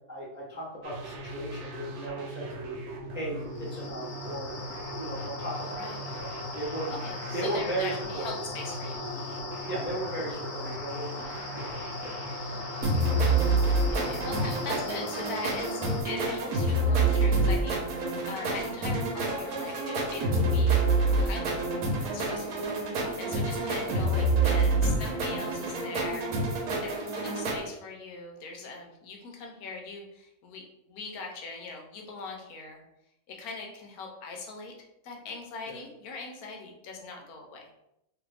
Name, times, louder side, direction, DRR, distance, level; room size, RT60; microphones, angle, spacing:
voice 1, 0.1-2.8 3.1-4.7 5.0-6.9 7.3-8.3 9.6-11.1 11.5-12.1 23.3-23.4 35.7-35.8, right 2 dB, 10° right, -7 dB, 0.5 m, -36 dB
sound 1, 0.8-14.7, right 1 dB, 65° right, 0.8 m, -40 dB
sound 2, 3.4-16.0, left 3 dB, 65° left, 0.7 m, -39 dB
voice 2, 5.7-6.1 7.0-9.0 11.3-11.5 13.9-21.6 21.9-22.7 22.9-26.3 26.8-32.8 33.3-34.7 35.0-37.7, left 3 dB, 80° left, 1 dB, 1.2 m, -41 dB
sound 3, 12.8-27.6, right 2 dB, 90° right, 1.2 m, -27 dB
2.9 x 2.5 x 3.2 m, 0.83 s
omnidirectional pair, 1.6 m